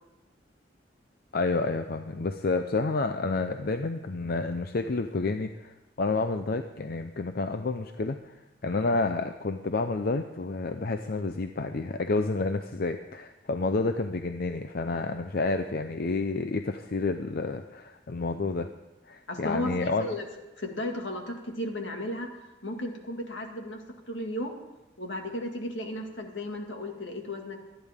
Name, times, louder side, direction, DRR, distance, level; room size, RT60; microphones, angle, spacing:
voice 1, 1.3-18.7 19.0-20.1, left 3 dB, 55° left, 7 dB, 0.6 m, -29 dB
voice 2, 19.3-20.2 20.6-22.3 22.6-23.8 24.1-24.5 25.0-27.6, left 1 dB, 80° left, 3 dB, 2.2 m, -34 dB
25.5 x 10.0 x 3.6 m, 1.0 s
head